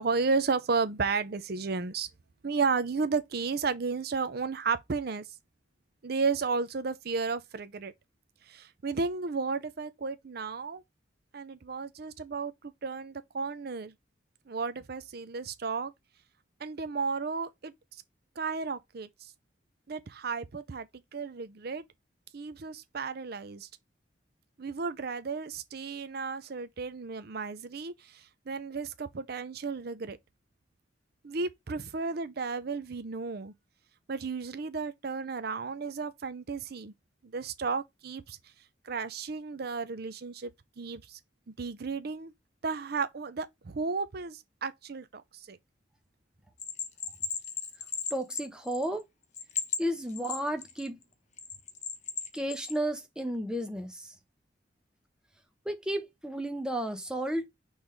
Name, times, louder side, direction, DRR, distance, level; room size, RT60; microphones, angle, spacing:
voice 1, 0.0-2.1 2.4-5.2 6.0-7.9 8.5-10.8 11.3-12.5 12.8-13.9 14.5-15.9 16.6-17.7 18.4-19.3 19.9-20.9 21.1-21.8 22.3-23.7 24.6-30.2 31.2-33.5 34.1-36.9 37.3-38.4 38.8-40.5 40.8-41.2 41.6-42.3 42.6-45.2 45.5-45.6, right 4 dB, 60° right, 0.6 m, -33 dB
Bell, 46.6-49.0 49.3-50.9 51.4-52.8, left 7 dB, 40° left, 1.2 m, -35 dB
voice 2, 48.1-49.0 49.8-51.0 52.3-54.1 55.6-57.5, right 1 dB, 5° right, 1.1 m, -33 dB
6.2 x 3.6 x 5.2 m
head